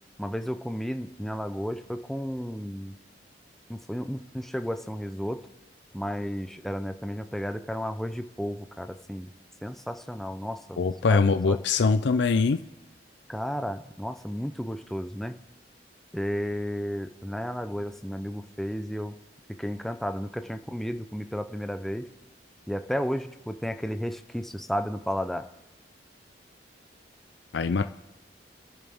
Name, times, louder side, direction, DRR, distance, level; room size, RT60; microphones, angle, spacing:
voice 1, 0.2-2.9 3.7-5.4 5.9-9.3 9.6-11.6 13.3-15.4 16.1-19.2 19.5-22.1 22.7-25.5, equal, ahead, 8 dB, 0.6 m, -33 dB
voice 2, 10.8-12.6 27.5-27.8, left 4 dB, 75° left, 9 dB, 0.5 m, -22 dB
29.5 x 11.0 x 3.6 m, 1.0 s
head